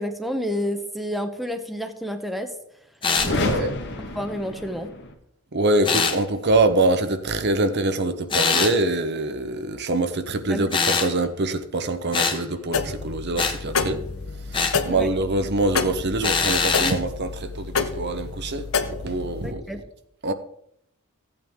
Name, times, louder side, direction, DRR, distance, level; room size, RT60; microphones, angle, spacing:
voice 1, 0.0-2.5 3.3-3.6 4.0-4.9 10.5-10.7 14.9-15.1 19.4-19.8, equal, ahead, 0.8 m, -30 dB
sound 1, 3.0-3.3 5.8-6.2 8.3-8.7 10.7-11.1 12.1-12.4 13.4-13.6 14.5-14.8 16.2-17.0, left 5 dB, 25° left, 1.1 m, -22 dB
sound 2, 3.1-5.2, left 2 dB, 55° left, 1.4 m, -29 dB
voice 2, 3.2-3.7 5.5-14.0 14.5-18.7 19.0-19.6 20.2-20.3, right 2 dB, 50° right, 0.9 m, -24 dB
sound 3, 12.7-19.5, left 5 dB, 70° left, 0.9 m, -29 dB
15.5 x 8.8 x 3.6 m
head